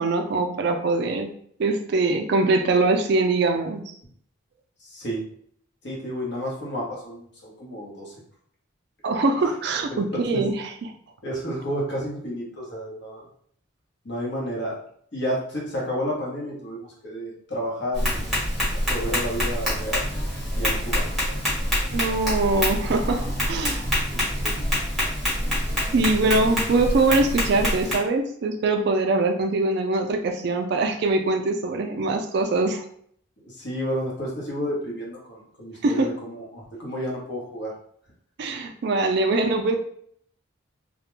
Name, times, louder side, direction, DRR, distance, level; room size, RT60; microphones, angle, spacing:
voice 1, 0.0-1.3 1.6-3.9 9.0-10.7 21.9-23.9 25.9-32.8 35.8-36.1 38.4-39.8, right 3 dB, 55° right, 6 dB, 0.3 m, -23 dB
voice 2, 4.8-5.2 5.8-8.1 9.9-10.4 11.2-13.2 14.0-14.8 15.1-18.3 18.9-20.0 20.6-21.1 24.1-24.5 33.4-37.7, equal, 60° left, -4 dB, 0.9 m, -31 dB
Tap, 17.9-27.9, equal, ahead, 1.0 m, -26 dB
2.3 x 2.1 x 3.0 m, 0.63 s
head